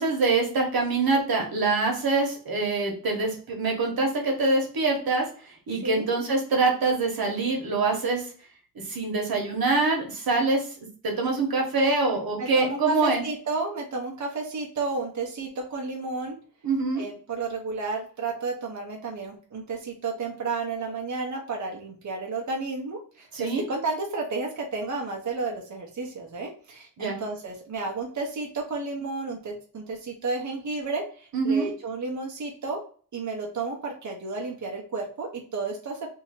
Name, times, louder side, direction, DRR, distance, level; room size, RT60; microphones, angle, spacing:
voice 1, 0.0-5.3 5.7-8.2 8.8-10.7 11.0-13.2 16.6-17.1 23.3-23.6 27.0-27.2 31.3-31.7, right 3 dB, 90° right, 1 dB, 1.2 m, -24 dB
voice 2, 12.4-16.4 16.9-32.8 33.1-36.1, right 3 dB, 55° right, 0 dB, 0.8 m, -32 dB
2.8 x 2.8 x 4.2 m, 0.43 s
wide cardioid pair, 115°, 35 cm